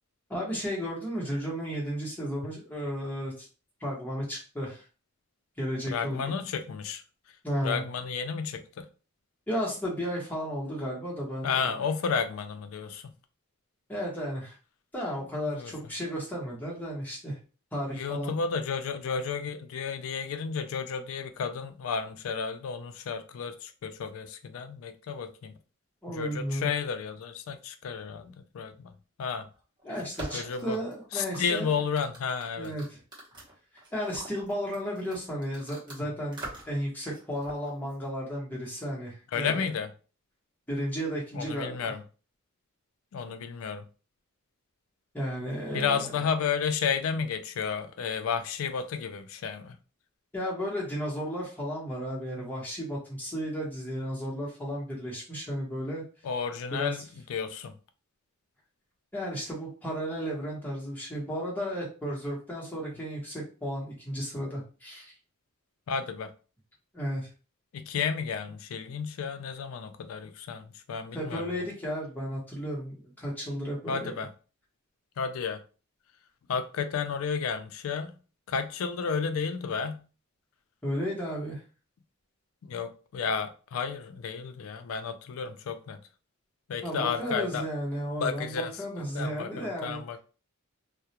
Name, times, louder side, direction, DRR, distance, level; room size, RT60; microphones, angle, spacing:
voice 1, 0.3-3.5 3.8-4.8 5.6-6.3 7.4-7.8 9.5-11.7 13.9-14.6 14.9-17.4 17.7-18.3 26.0-26.7 29.8-31.7 32.6-33.0 33.9-36.4 36.7-39.6 40.7-41.9 45.1-46.0 50.3-56.0 56.7-56.9 59.1-65.1 66.9-67.3 71.1-74.1 80.8-81.6 86.8-90.0, equal, 10° left, 0.9 m, -33 dB
voice 2, 5.9-7.0 7.6-8.9 11.4-13.1 15.5-15.7 17.9-25.5 26.1-28.9 29.2-29.5 30.3-30.8 31.1-32.7 39.3-39.9 41.3-42.0 43.1-43.8 45.7-49.8 56.2-57.7 65.9-66.3 67.7-71.6 73.9-74.3 75.2-75.6 76.5-78.1 78.5-80.0 82.7-86.0 86.7-87.7 88.2-88.7 89.1-90.2, left 6 dB, 75° left, 0.3 m, -32 dB
sound 1, 29.5-36.0 36.3-36.8 37.1-38.1, right 1 dB, 20° right, 0.9 m, -44 dB
2.3 x 2.0 x 2.8 m
head